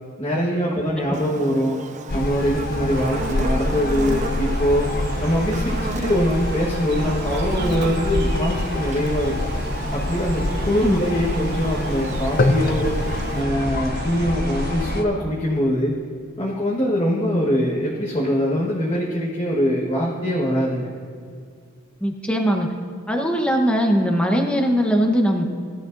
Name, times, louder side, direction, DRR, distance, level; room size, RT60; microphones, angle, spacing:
voice 1, 0.2-1.8 2.1-4.9 5.2-9.5 9.9-12.9 13.3-15.9 16.4-20.9, equal, 25° left, -6 dB, 1.4 m, -23 dB
Buzz, 1.1-13.4, right 3 dB, 35° right, 0.4 m, -35 dB
sound 1, 2.1-15.0, left 2 dB, 40° left, 0.6 m, -26 dB
sound 2, 2.9-15.0, right 3 dB, 50° right, 0.8 m, -36 dB
voice 2, 22.0-22.7 23.1-25.4, equal, 5° left, 2 dB, 1.0 m, -20 dB
20.0 x 12.0 x 2.6 m, 2.2 s
head